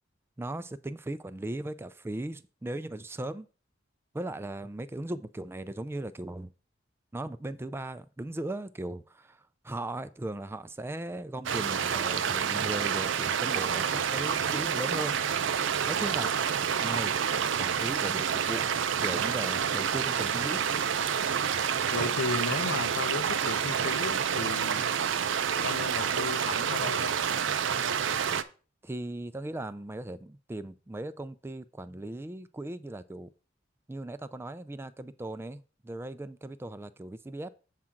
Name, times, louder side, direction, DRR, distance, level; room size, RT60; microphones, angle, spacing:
voice 1, 0.4-3.5 4.1-6.5 7.1-15.1 15.8-17.1 17.6-20.6 28.8-33.3 33.9-37.5, right 1 dB, 10° right, 0.3 m, -38 dB
sound 1, 11.5-28.4, right 7 dB, 70° right, 0.5 m, -28 dB
voice 2, 21.9-24.9 25.6-27.1, left 3 dB, 85° left, 0.7 m, -34 dB
7.4 x 3.7 x 5.8 m
head